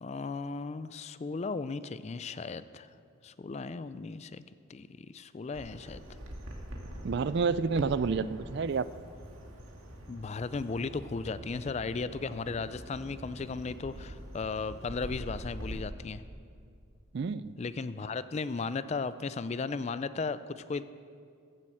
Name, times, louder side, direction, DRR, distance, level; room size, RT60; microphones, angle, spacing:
voice 1, 0.0-2.9 3.2-4.4 4.7-6.0 10.1-16.2 17.6-20.8, left 4 dB, 30° left, 14 dB, 0.3 m, -36 dB
Bird vocalization bird call bird song, 5.5-15.8, equal, 75° right, 2.0 m, -44 dB
voice 2, 7.0-8.9 17.1-17.5, right 5 dB, 50° right, 16 dB, 0.3 m, -29 dB
15.0 x 7.5 x 7.8 m, 2.3 s
head